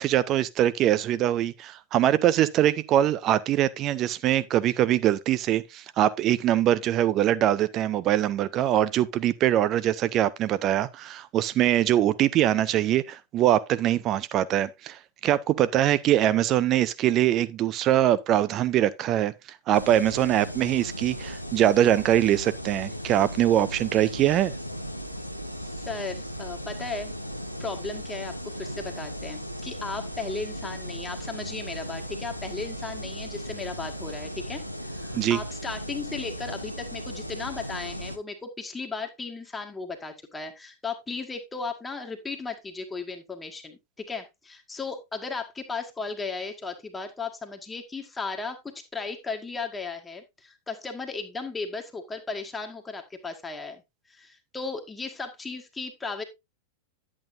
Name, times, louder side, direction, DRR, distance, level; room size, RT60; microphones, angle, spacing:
voice 1, 0.0-19.3 19.7-24.5 35.1-35.4, right 12 dB, 35° right, 0.7 m, -23 dB
sound 1, 19.7-38.2, equal, 90° left, 0.9 m, -37 dB
voice 2, 25.6-27.1 27.6-43.8 44.1-53.8 54.1-56.2, left 4 dB, 10° left, 1.6 m, -36 dB
10.5 x 8.6 x 2.6 m
figure-of-eight pair, 90°, 0 cm